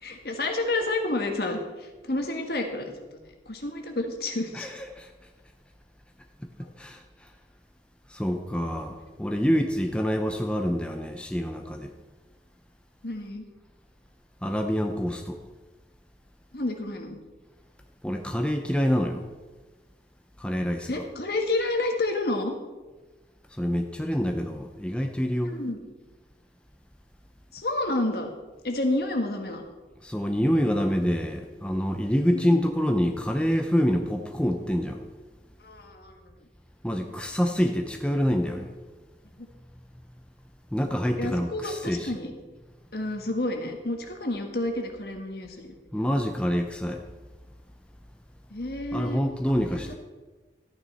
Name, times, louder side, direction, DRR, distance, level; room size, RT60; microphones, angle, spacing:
voice 1, 0.0-2.9 3.4-4.7 13.0-13.4 16.5-17.2 20.9-22.5 25.5-25.8 27.5-28.3 28.6-29.6 32.3-32.8 35.6-36.2 41.2-42.3 42.9-45.7 48.5-49.2 49.6-49.9, left 2 dB, 60° left, 4 dB, 1.6 m, -30 dB
voice 2, 4.5-5.1 6.8-7.0 8.1-11.9 14.4-15.4 18.0-19.2 20.4-20.9 23.6-25.5 30.0-35.0 36.8-38.7 40.7-42.1 45.9-47.0 48.9-49.9, equal, 5° left, 4 dB, 0.7 m, -26 dB
14.0 x 9.3 x 4.2 m, 1.3 s
head